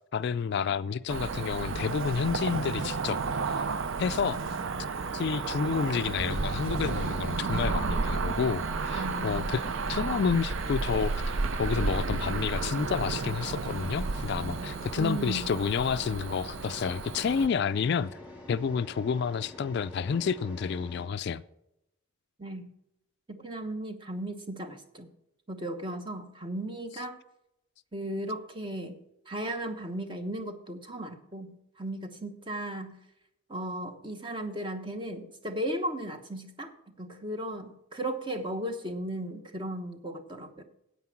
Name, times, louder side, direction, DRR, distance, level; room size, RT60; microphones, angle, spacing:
voice 1, 0.1-3.2 3.5-3.7 4.0-4.4 5.1-9.6 9.9-18.1 18.5-21.4, left 6 dB, 50° left, 0.3 m, -30 dB
Cricket / Motor vehicle (road), 1.1-17.5, right 4 dB, 65° right, 0.5 m, -32 dB
voice 2, 4.3-4.9 8.9-9.7 15.0-15.5 22.4-22.7 23.3-25.1 25.5-27.2 27.9-29.0 29.3-33.0 33.5-40.6, right 1 dB, 25° right, 1.0 m, -36 dB
sound 1, 4.9-21.0, left 1 dB, 5° right, 3.1 m, -47 dB
9.5 x 8.5 x 6.0 m
head